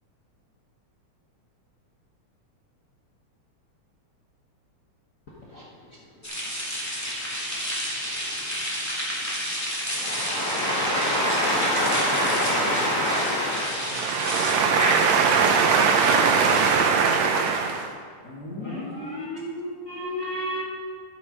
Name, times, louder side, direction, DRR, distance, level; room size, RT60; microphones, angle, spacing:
sound 1, 6.2-16.7, equal, 5° left, 1.6 m, -31 dB
voice 1, 9.8-13.9 14.8-14.9 18.6-19.2 19.9-20.6, equal, 85° left, -5 dB, 0.7 m, -26 dB
voice 2, 13.7-18.0, right 5 dB, 75° right, 5 dB, 1.7 m, -21 dB
voice 3, 18.2-20.6, left 1 dB, 35° left, -4 dB, 1.9 m, -34 dB
11.5 x 7.8 x 5.2 m, 2.1 s
omnidirectional pair, 3.4 m